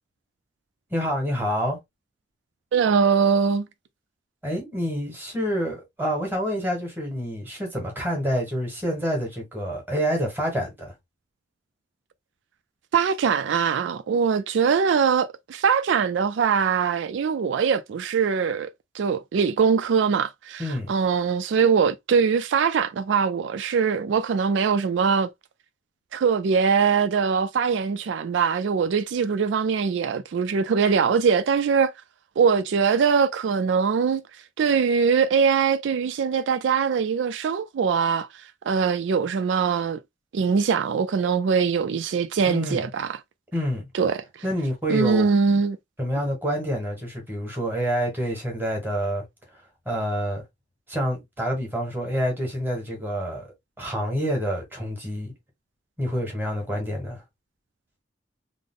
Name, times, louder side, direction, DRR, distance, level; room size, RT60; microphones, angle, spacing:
voice 1, 0.9-1.8 4.4-10.9 20.6-20.9 42.5-42.9 43.5-43.9 44.4-45.3 46.0-49.2 49.8-50.4 50.9-53.5 53.8-55.3 56.0-57.2, equal, 10° right, 1.6 m, -27 dB
voice 2, 2.7-3.7 12.9-25.3 26.1-31.9 32.4-34.2 34.6-38.3 38.6-40.0 40.3-43.2 43.9-44.2 44.9-45.8, right 6 dB, 80° right, 0.4 m, -22 dB
3.5 x 2.0 x 3.7 m
head